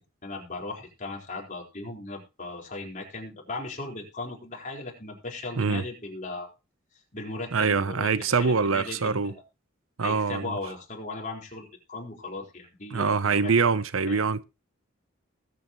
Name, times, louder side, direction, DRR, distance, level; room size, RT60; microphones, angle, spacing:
voice 1, 0.2-6.5 7.1-9.4 10.0-13.5 14.1-14.3, left 2 dB, 40° left, 4.4 m, -37 dB
voice 2, 7.5-9.3 10.0-10.5 12.9-14.4, right 5 dB, 80° right, 0.7 m, -24 dB
20.0 x 8.3 x 3.1 m
head